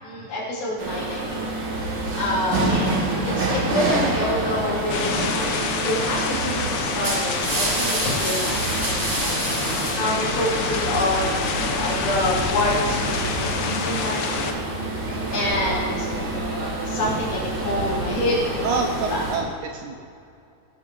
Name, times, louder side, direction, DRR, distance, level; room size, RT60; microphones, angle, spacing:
voice 1, 0.0-1.4 1.9-14.6 15.3-16.2 16.8-18.5 19.1-19.2, left 1 dB, 85° left, -10 dB, 4.9 m, -27 dB
sound 1, 0.8-19.4, right 2 dB, 60° right, 3.7 m, -27 dB
sound 2, 1.1-19.3, left 1 dB, 35° left, 3.3 m, -37 dB
powerful rain thunder and hailstorm, 4.9-14.5, left 6 dB, 70° left, 2.1 m, -28 dB
voice 2, 18.6-19.9, right 4 dB, 75° right, 3 dB, 1.8 m, -27 dB
19.0 x 12.5 x 3.1 m, 2.5 s
omnidirectional pair, 4.1 m